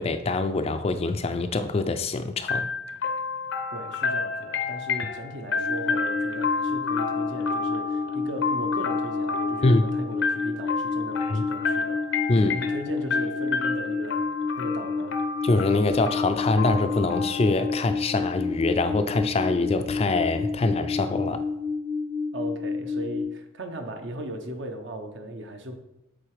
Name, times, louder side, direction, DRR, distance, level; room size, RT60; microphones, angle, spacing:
voice 1, 0.0-2.7 9.6-9.8 11.3-11.4 12.3-12.6 15.4-21.4, left 2 dB, 30° left, 0.3 m, -24 dB
sound 1, 2.5-18.3, left 4 dB, 70° left, 0.6 m, -30 dB
voice 2, 3.7-12.0 12.4-14.3 14.6-15.2 22.3-25.7, right 1 dB, 60° right, 0.8 m, -37 dB
sound 2, 5.6-23.2, left 4 dB, 15° right, 0.6 m, -30 dB
7.6 x 3.8 x 4.8 m
head